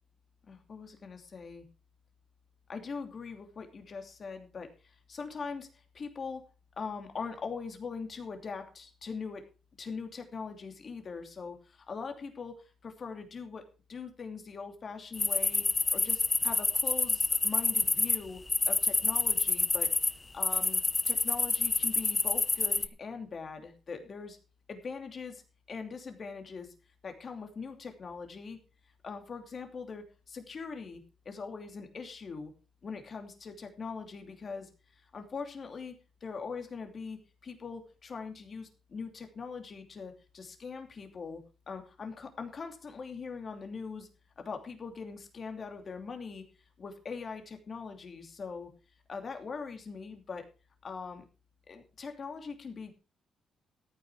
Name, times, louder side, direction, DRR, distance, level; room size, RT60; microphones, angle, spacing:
voice 1, 0.5-1.7 2.7-6.4 6.8-9.4 9.8-13.6 13.9-15.6 15.9-19.9 20.3-24.4 24.7-25.4 25.7-26.7 27.0-28.6 29.0-32.5 32.8-36.0 36.2-44.1 44.4-46.4 46.8-48.7 49.1-50.5 50.8-51.2 51.7-52.9, left 5 dB, 40° left, 5 dB, 2.8 m, -42 dB
sound 1, 15.1-18.2 18.5-20.1 20.4-22.9, left 3 dB, 25° left, 0.7 m, -27 dB
14.0 x 9.3 x 4.9 m, 0.34 s
cardioid pair, 115°, 0 cm